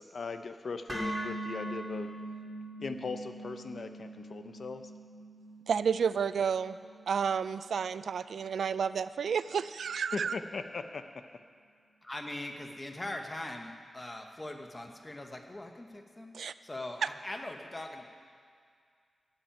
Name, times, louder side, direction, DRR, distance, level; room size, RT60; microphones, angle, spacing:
voice 1, 0.0-2.1 2.8-4.8 10.1-11.1, left 4 dB, 60° left, 9 dB, 0.6 m, -39 dB
sound 1, 0.9-9.0, right 1 dB, 10° right, 2.7 m, -42 dB
voice 2, 5.7-6.8 7.1-10.4 16.3-16.5, right 7 dB, 90° right, 14 dB, 0.3 m, -31 dB
voice 3, 12.0-18.0, left 1 dB, 20° left, 4 dB, 1.0 m, -41 dB
13.0 x 5.9 x 8.9 m, 2.2 s
wide cardioid pair, 125°, 0 cm